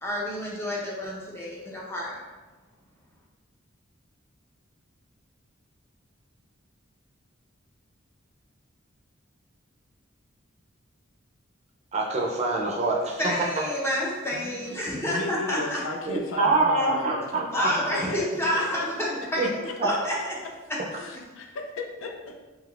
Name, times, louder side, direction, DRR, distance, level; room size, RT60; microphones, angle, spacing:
voice 1, 0.0-2.2 13.2-15.8 17.5-19.5 19.8-20.1, left 1 dB, 15° left, -5 dB, 0.7 m, -29 dB
voice 2, 11.9-13.2 13.6-13.7 16.1-17.7 19.4-19.5 19.8-19.9, right 3 dB, 35° right, -2 dB, 0.5 m, -25 dB
voice 3, 15.0-18.5 19.4-20.0 20.4-20.5 20.9-22.4, left 3 dB, 75° left, 2 dB, 0.5 m, -36 dB
3.4 x 3.3 x 2.4 m, 1.2 s
head